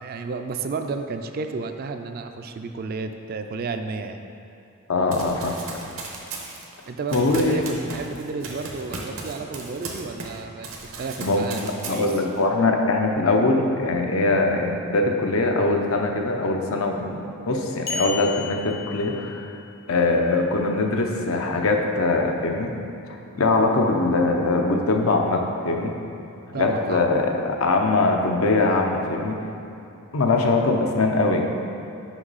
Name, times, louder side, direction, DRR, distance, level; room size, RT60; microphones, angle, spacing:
voice 1, 0.0-4.2 6.9-12.1 26.5-27.0, right 4 dB, 45° right, 7 dB, 0.3 m, -31 dB
voice 2, 4.9-5.6 7.1-7.6 11.2-19.4 19.9-22.7 23.3-25.9 26.5-29.4 30.1-31.5, left 2 dB, 85° left, 2 dB, 0.7 m, -22 dB
Run, 5.1-10.4 10.6-12.4, right 3 dB, 75° right, 0.9 m, -37 dB
sound 1, 17.9-19.7, left 4 dB, 50° left, 0.8 m, -33 dB
6.1 x 5.4 x 4.0 m, 2.8 s
head